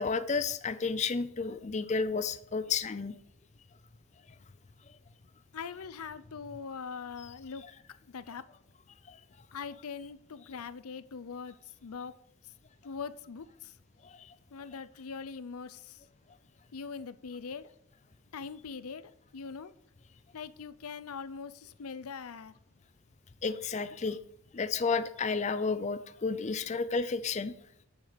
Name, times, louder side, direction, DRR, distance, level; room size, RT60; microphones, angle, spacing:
voice 1, 0.0-3.1 23.4-24.2 24.5-27.5, left 4 dB, 30° left, 11 dB, 0.4 m, -31 dB
voice 2, 5.5-7.6 8.1-8.5 9.5-11.6 11.8-12.1 12.8-13.7 14.5-16.0 16.7-17.7 18.3-19.7 20.3-22.5, left 5 dB, 90° left, 15 dB, 0.6 m, -42 dB
10.0 x 6.5 x 5.0 m, 0.74 s
head